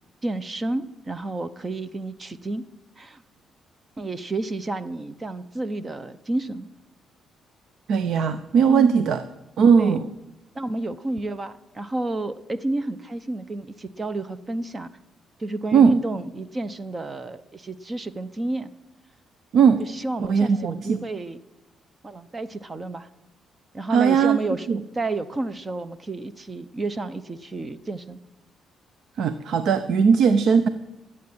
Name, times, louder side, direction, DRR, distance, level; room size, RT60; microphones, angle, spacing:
voice 1, 0.2-2.7 3.0-3.2 4.0-6.7 8.7-9.0 9.8-10.0 10.5-14.9 15.4-18.7 19.8-21.4 22.0-23.1 23.7-24.7 25.0-28.2, right 2 dB, 25° right, 14 dB, 0.8 m, -30 dB
voice 2, 7.9-9.2 9.6-10.1 15.7-16.0 19.5-19.8 20.2-21.0 23.9-24.4 24.7-24.8 29.2-30.7, right 6 dB, 70° right, 12 dB, 0.7 m, -18 dB
15.0 x 8.7 x 8.6 m, 0.93 s
cardioid pair, 90°, 0 cm